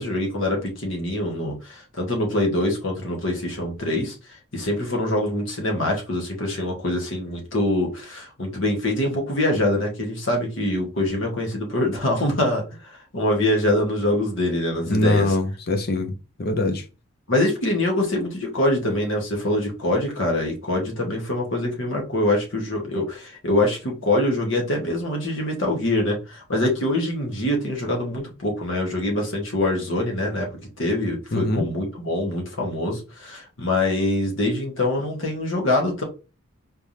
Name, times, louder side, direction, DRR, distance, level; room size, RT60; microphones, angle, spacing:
voice 1, 0.0-4.1 4.5-15.4 17.3-30.5 30.8-36.0, left 1 dB, 60° left, 1.5 m, -24 dB
voice 2, 14.9-16.1 16.4-16.8 31.3-31.6, left 1 dB, 45° left, 0.7 m, -22 dB
4.4 x 3.4 x 2.8 m
head